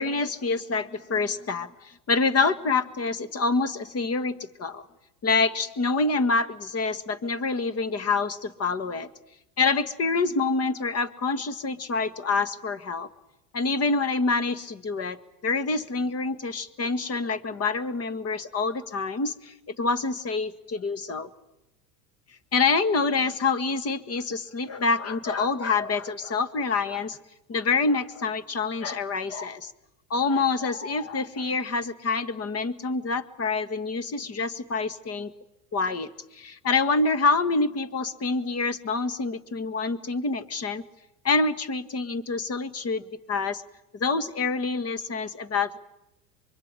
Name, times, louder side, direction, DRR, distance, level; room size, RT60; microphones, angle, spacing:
voice 1, 0.0-1.7 2.1-4.8 5.2-9.1 9.6-13.1 13.5-15.2 15.4-21.3 22.5-27.2 27.5-29.7 30.1-35.3 35.7-40.8 41.2-43.6 43.9-45.8, left 4 dB, 30° left, 14 dB, 1.8 m, -26 dB
24.5 x 23.0 x 9.0 m, 0.88 s
supercardioid pair, 110°, 46 cm